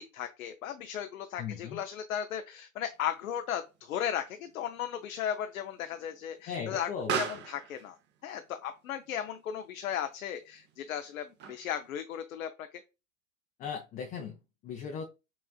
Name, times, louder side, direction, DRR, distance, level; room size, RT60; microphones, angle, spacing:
voice 1, 0.0-6.9 7.2-8.0 8.2-12.7, left 9 dB, 75° left, 0.6 m, -36 dB
voice 2, 1.4-1.8 6.5-7.2 13.6-15.1, left 6 dB, 20° left, 0.5 m, -38 dB
Explosion, 2.9-11.9, right 6 dB, 25° right, 0.6 m, -42 dB
6.0 x 2.4 x 2.3 m
hypercardioid pair, 100°, 41 cm